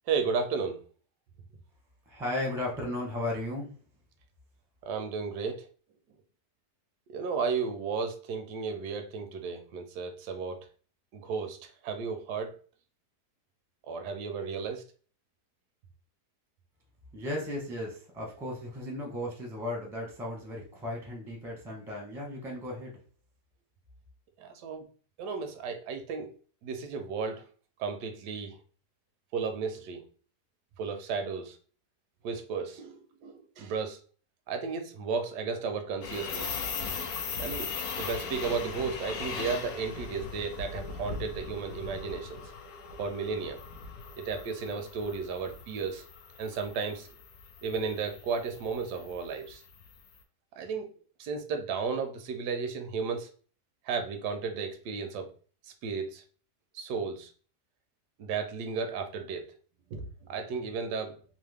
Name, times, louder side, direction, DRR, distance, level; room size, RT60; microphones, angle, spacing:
voice 1, 0.1-0.8 4.8-5.7 7.1-10.7 11.1-12.6 13.9-14.8 24.4-24.9 25.2-26.3 26.6-27.4 27.8-28.6 29.3-30.0 30.8-31.6 32.2-34.0 34.5-36.6 37.4-37.7 38.0-42.4 43.0-43.6 44.2-46.0 46.4-47.1 47.6-49.6 50.5-50.9 51.2-53.3 53.8-55.3 55.8-56.2 56.7-57.3 58.2-59.5 59.9-61.2, right 5 dB, 85° right, 1.2 m, -34 dB
voice 2, 2.1-3.7 17.1-23.0, left 1 dB, 5° right, 0.4 m, -35 dB
sound 1, 36.0-50.1, left 5 dB, 70° left, 1.0 m, -39 dB
3.0 x 2.0 x 3.3 m
omnidirectional pair, 1.7 m